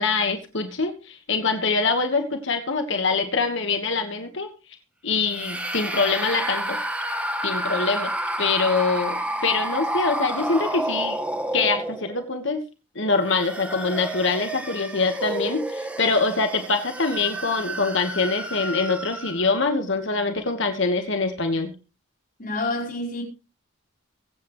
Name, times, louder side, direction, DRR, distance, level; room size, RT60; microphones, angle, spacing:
voice 1, 0.0-4.5 5.0-6.8 7.4-8.1 8.4-11.2 11.5-12.6 12.9-21.7, left 4 dB, 55° left, 1.5 m, -24 dB
sound 1, 5.2-12.3 13.0-19.5, right 1 dB, 5° right, 1.5 m, -30 dB
voice 2, 22.4-23.2, left 2 dB, 40° left, 4.8 m, -28 dB
23.5 x 8.6 x 3.2 m
head